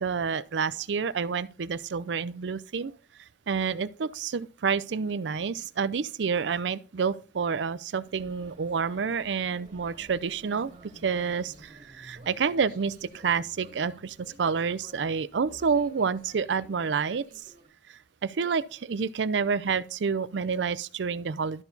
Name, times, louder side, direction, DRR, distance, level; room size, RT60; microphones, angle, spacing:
voice 1, 0.0-2.9 3.5-10.7 11.0-17.2 17.9-21.6, right 5 dB, 85° right, 0.5 m, -29 dB
sound 1, 8.0-17.7, right 1 dB, 45° right, 2.3 m, -53 dB
12.5 x 4.5 x 4.0 m
head